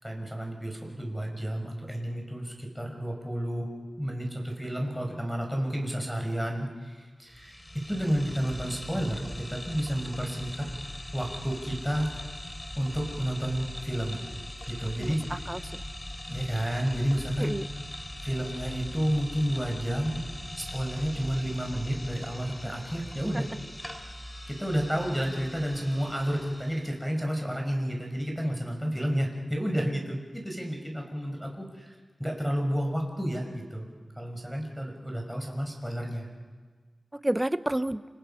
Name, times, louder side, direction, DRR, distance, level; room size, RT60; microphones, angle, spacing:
voice 1, 0.0-3.7 4.0-7.6 7.9-10.7 11.1-12.1 12.8-14.2 14.7-15.2 16.3-17.6 18.2-20.3 20.6-23.5 24.5-31.9 32.2-33.9 34.2-36.3, equal, ahead, 1 dB, 5.9 m, -31 dB
sound 1, 7.3-27.0, left 1 dB, 20° left, 3.3 m, -41 dB
voice 2, 15.0-15.8 17.4-17.7 23.3-23.4 37.1-38.0, right 1 dB, 15° right, 12 dB, 0.8 m, -30 dB
29.0 x 28.0 x 5.8 m, 1.5 s
wide cardioid pair, 70°, 0 cm